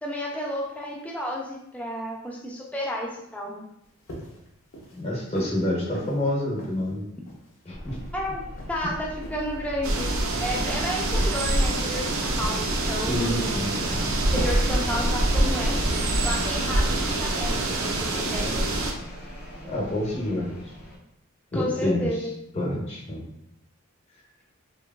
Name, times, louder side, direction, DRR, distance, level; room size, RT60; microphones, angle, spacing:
voice 1, 0.0-3.6 8.1-13.5 14.3-15.8 16.2-18.6 21.5-22.3, left 1 dB, 5° left, -2 dB, 0.3 m, -32 dB
sound 1, 4.1-4.5 4.7-5.0 5.4-5.6 5.9-6.1 6.6-6.8 7.3-7.5 7.9-8.1 8.6-8.9 9.2-9.4 9.9-10.1 10.5-10.8 11.1-11.4 11.8-12.0 12.4-12.8 13.1-13.3 13.7-14.0 14.4-14.6 15.0-15.3 15.6-15.8, equal, 70° left, 0.6 m, -39 dB
voice 2, 5.0-7.0 7.6-8.0 8.8-8.9 13.0-14.0 19.7-20.5 21.5-22.1 22.5-23.3, left 1 dB, 30° left, -5 dB, 0.7 m, -28 dB
sound 2, 7.7-21.0, equal, 90° left, 1.0 m, -38 dB
sound 3, 9.8-18.9, right 2 dB, 75° right, 0.4 m, -25 dB
3.0 x 2.2 x 2.3 m, 0.77 s
head